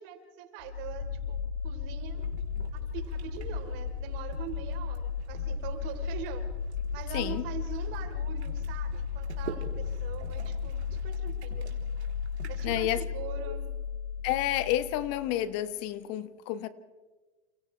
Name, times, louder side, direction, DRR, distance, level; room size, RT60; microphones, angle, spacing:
voice 1, 0.0-2.2 2.7-6.5 6.9-11.7 12.5-13.6, right 10 dB, 55° right, 5 dB, 4.0 m, -43 dB
sound 1, 0.6-15.4, left 6 dB, 70° left, 3.7 m, -35 dB
sound 2, 2.1-13.0, right 7 dB, 90° right, 3.6 m, -49 dB
voice 2, 7.1-7.4 12.6-13.0 13.5-13.6 14.2-16.7, left 13 dB, 45° left, 13 dB, 1.3 m, -30 dB
29.5 x 28.5 x 3.4 m, 1.3 s
hypercardioid pair, 110°, 32 cm